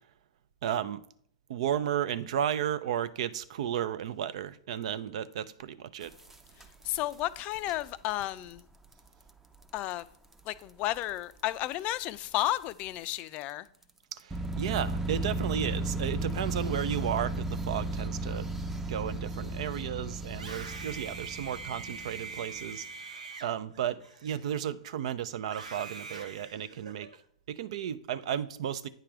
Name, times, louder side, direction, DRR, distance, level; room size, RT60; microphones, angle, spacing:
voice 1, 0.6-1.0 1.5-6.1 14.1-18.5 18.9-22.9 23.4-27.1 27.5-28.9, right 9 dB, 65° right, 0.5 m, -33 dB
sound 1, 6.0-7.1 7.5-7.7 8.1-8.3 8.6-8.7 8.9-9.0 9.6-9.7 10.5-10.6 11.0-11.1 12.4-12.5 13.1-13.2 14.3-22.6, right 2 dB, 10° right, 0.6 m, -35 dB
voice 2, 6.8-8.6 9.7-10.0 10.5-13.7, left 15 dB, 40° left, 0.4 m, -32 dB
Screaming, 20.4-24.8 25.4-27.2, right 4 dB, 85° right, 1.1 m, -44 dB
9.0 x 3.3 x 6.0 m
hypercardioid pair, 110°, 4 cm